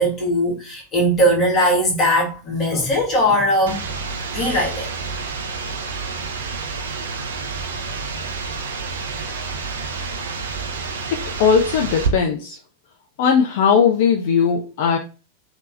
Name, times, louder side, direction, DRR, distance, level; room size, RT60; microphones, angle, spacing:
voice 1, 0.0-3.8 4.3-4.9, equal, 25° left, 1.6 m, -19 dB
sound 1, 3.7-12.1, right 4 dB, 65° right, 0.6 m, -29 dB
voice 2, 11.1-12.6 13.2-15.0, left 6 dB, 50° left, 0.4 m, -18 dB
3.6 x 2.8 x 2.5 m
figure-of-eight pair, 90°, 0 cm